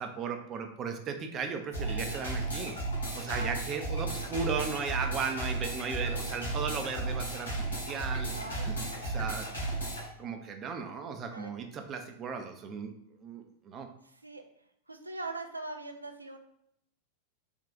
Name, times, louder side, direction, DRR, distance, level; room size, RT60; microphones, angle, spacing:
voice 1, 0.0-2.8 3.1-8.8 9.0-9.5 10.2-12.9 13.2-13.9, right 5 dB, 30° right, 5 dB, 0.5 m, -36 dB
sound 1, 1.7-10.1, right 2 dB, 80° left, 1.2 m, -34 dB
voice 2, 8.3-9.2 11.3-11.5 14.0-14.4 14.9-16.4, right 2 dB, 85° right, 5 dB, 0.4 m, -42 dB
3.5 x 2.4 x 3.8 m, 0.73 s
figure-of-eight pair, 90°, 0 cm